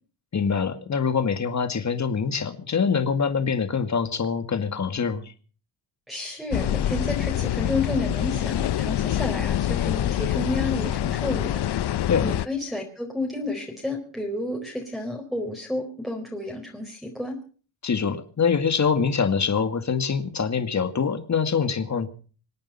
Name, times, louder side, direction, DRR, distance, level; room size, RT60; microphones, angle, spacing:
voice 1, 0.3-5.2 12.1-12.3 17.8-22.1, left 6 dB, 40° left, 9 dB, 2.2 m, -24 dB
voice 2, 6.1-17.3, left 2 dB, ahead, -1 dB, 4.3 m, -31 dB
sound 1, 6.5-12.5, left 12 dB, 65° left, 0.9 m, -25 dB
26.5 x 8.9 x 5.7 m, 0.41 s
cardioid pair, 95°, 44 cm